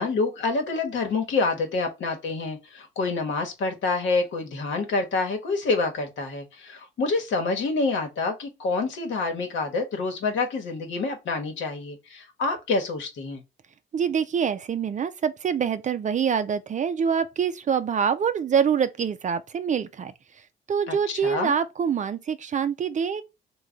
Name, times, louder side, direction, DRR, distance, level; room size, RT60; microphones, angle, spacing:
voice 1, 0.0-13.4 20.9-21.5, left 3 dB, 70° left, 1.1 m, -27 dB
voice 2, 13.9-20.1 20.7-23.2, right 7 dB, 40° right, 0.4 m, -25 dB
3.2 x 2.3 x 3.6 m
cardioid pair, 90°, 20 cm